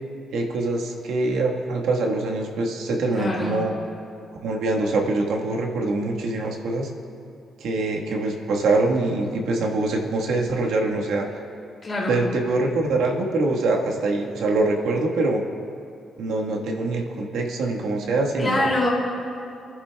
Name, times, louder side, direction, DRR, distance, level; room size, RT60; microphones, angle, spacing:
voice 1, 0.3-3.7 4.4-6.9 7.6-11.3 12.1-15.4 16.2-18.7, right 2 dB, 80° right, 1 dB, 1.4 m, -24 dB
voice 2, 3.1-3.6 11.8-12.2 18.4-18.9, left 2 dB, 20° left, -4 dB, 2.5 m, -24 dB
26.5 x 11.0 x 2.3 m, 2.6 s
cardioid pair, 180°, 0 cm